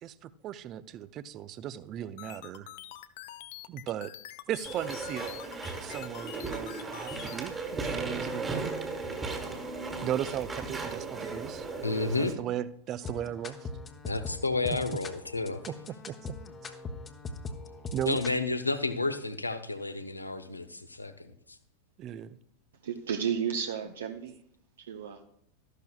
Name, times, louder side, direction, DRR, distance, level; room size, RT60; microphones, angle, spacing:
voice 1, 0.0-2.7 3.7-4.1 4.5-5.3 5.8-8.7 10.0-11.7 12.0-13.7 16.1-16.3 17.9-18.2 22.0-22.4, right 11 dB, 35° right, 16 dB, 0.5 m, -36 dB
sound 1, 2.2-7.4, left 14 dB, 50° left, 0.5 m, -45 dB
Walk footsteps / Chatter / Squeak, 4.7-12.3, right 3 dB, 15° right, 1.5 m, -36 dB
voice 2, 11.8-12.4 14.1-15.6 18.0-21.6, left 3 dB, 80° left, 10 dB, 0.9 m, -31 dB
sound 2, 13.0-18.4, left 3 dB, 20° left, 1.0 m, -41 dB
voice 3, 22.8-24.3 24.8-25.2, right 8 dB, 65° right, 5 dB, 0.7 m, -32 dB
13.0 x 11.5 x 2.3 m, 0.70 s
figure-of-eight pair, 90°, 0 cm